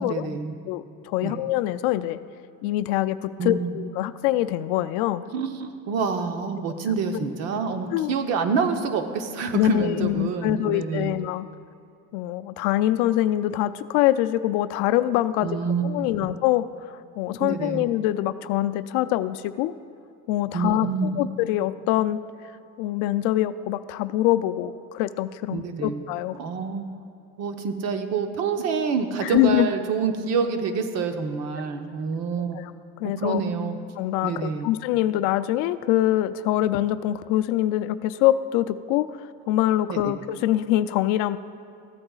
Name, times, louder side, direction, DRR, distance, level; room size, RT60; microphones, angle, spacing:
voice 1, 0.1-0.6 1.2-1.4 3.4-3.8 5.3-11.1 15.4-15.8 17.4-17.9 20.5-21.1 25.5-26.1 26.4-26.9 27.4-32.6 33.2-33.8 34.2-34.7 39.9-40.1, right 5 dB, 55° right, 6 dB, 0.9 m, -27 dB
voice 2, 0.7-2.2 2.6-5.2 7.1-7.2 7.9-8.2 9.5-11.5 12.1-15.6 15.8-19.7 20.3-22.2 22.8-26.4 29.2-29.7 32.5-32.7 33.0-33.4 34.0-39.1 39.5-41.4, left 14 dB, 70° left, 13 dB, 0.5 m, -24 dB
15.0 x 8.7 x 2.4 m, 2.5 s
supercardioid pair, 125°, 31 cm